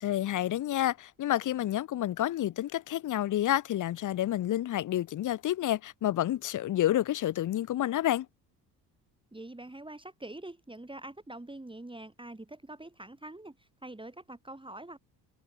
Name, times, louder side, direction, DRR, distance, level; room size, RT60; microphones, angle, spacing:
voice 1, 0.0-8.3, left 13 dB, 40° left, 0.9 m, -29 dB
voice 2, 9.3-15.0, right 1 dB, 10° right, 4.4 m, -45 dB
figure-of-eight pair, 55°, 48 cm